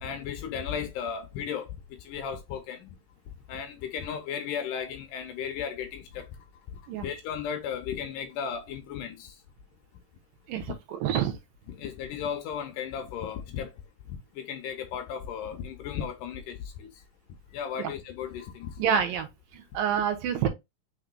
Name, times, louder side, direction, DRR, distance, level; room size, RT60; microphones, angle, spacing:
voice 1, 0.0-1.7 2.0-3.0 3.5-6.3 7.0-9.3 11.7-13.7 14.4-16.9 17.5-18.8, left 7 dB, 80° left, 2.1 m, -35 dB
voice 2, 10.5-11.4 17.8-17.9 18.8-19.3 19.5-20.5, right 8 dB, 80° right, 2.6 m, -27 dB
5.9 x 3.8 x 2.2 m
omnidirectional pair, 4.1 m